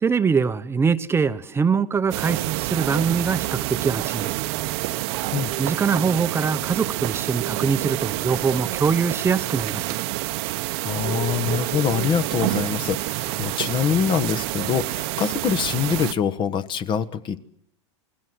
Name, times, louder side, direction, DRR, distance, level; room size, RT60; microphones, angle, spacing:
voice 1, 0.0-4.4 5.6-10.0, right 5 dB, 15° right, 10 dB, 0.9 m, -23 dB
sound 1, 2.1-16.1, right 19 dB, 60° right, 1.0 m, -28 dB
voice 2, 10.8-17.4, left 7 dB, 30° left, 13 dB, 1.2 m, -24 dB
28.0 x 20.0 x 7.9 m, 0.75 s
hypercardioid pair, 120°, 15 cm